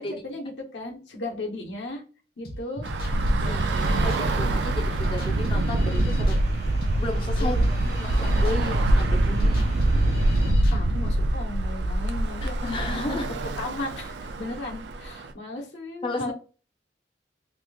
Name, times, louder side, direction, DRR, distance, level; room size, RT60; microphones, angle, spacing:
voice 1, 0.0-2.0 2.4-2.9 3.4-4.0 7.4-7.8 10.7-16.3, left 2 dB, 85° left, -1 dB, 1.1 m, -36 dB
sound 1, 2.4-11.0, left 1 dB, 55° left, 0.9 m, -41 dB
Bus / Traffic noise roadway noise, 2.8-15.3, right 1 dB, 85° right, 0.4 m, -24 dB
sound 2, 3.7-10.5, equal, 65° right, 1.2 m, -37 dB
voice 2, 4.0-6.4 7.0-7.6 7.8-9.6 12.6-13.3 16.0-16.3, left 2 dB, 30° left, 2 dB, 0.4 m, -33 dB
2.9 x 2.4 x 3.3 m, 0.36 s
head